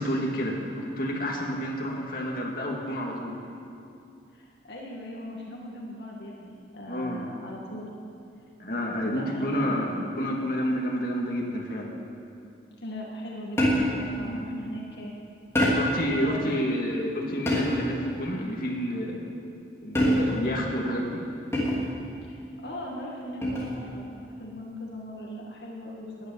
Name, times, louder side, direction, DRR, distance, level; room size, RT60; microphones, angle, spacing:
voice 1, 0.0-3.4 6.9-7.3 8.6-11.9 14.2-14.4 15.7-19.3 19.8-21.2, equal, 50° left, -2 dB, 2.4 m, -29 dB
voice 2, 4.3-7.9 9.0-9.8 12.8-15.1 16.1-16.5 22.2-26.3, equal, 70° left, -3 dB, 2.1 m, -39 dB
sound 1, 13.6-14.1 15.6-16.1 17.5-18.0 20.0-20.5 21.5-22.0 23.4-23.8, equal, 15° left, 2.9 m, -24 dB
13.0 x 10.5 x 9.6 m, 2.6 s
head